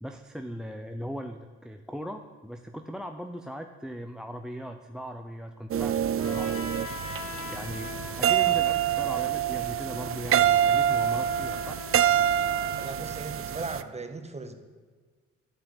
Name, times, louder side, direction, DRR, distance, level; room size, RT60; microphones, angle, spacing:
voice 1, 0.0-11.8, equal, ahead, 5 dB, 0.7 m, -39 dB
sound 1, 5.7-13.8, right 10 dB, 45° right, 0.6 m, -26 dB
Trumpet, 6.2-12.8, left 3 dB, 50° left, 2.3 m, -41 dB
voice 2, 12.8-14.5, right 3 dB, 20° right, 7 dB, 1.5 m, -37 dB
11.0 x 8.0 x 9.8 m, 1.5 s
cardioid pair, 90°, 30 cm